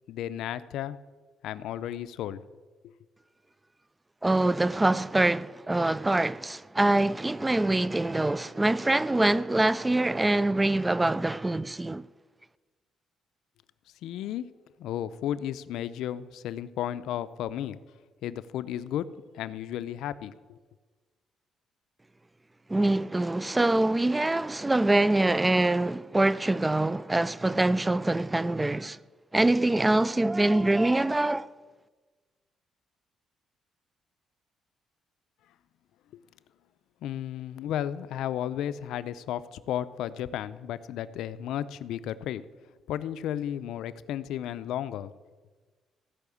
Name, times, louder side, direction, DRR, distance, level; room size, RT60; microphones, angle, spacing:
voice 1, 0.1-1.0 1.4-2.4 2.8-2.9 14.0-14.5 14.8-17.8 18.2-19.1 19.3-20.6 36.1-36.2 37.0-42.4 42.9-45.1, left 11 dB, 85° left, 0.5 m, -33 dB
voice 2, 4.2-12.0 22.7-29.0 29.3-31.5, right 2 dB, 15° right, 0.3 m, -24 dB
16.0 x 5.7 x 8.5 m
cardioid pair, 120°, 0 cm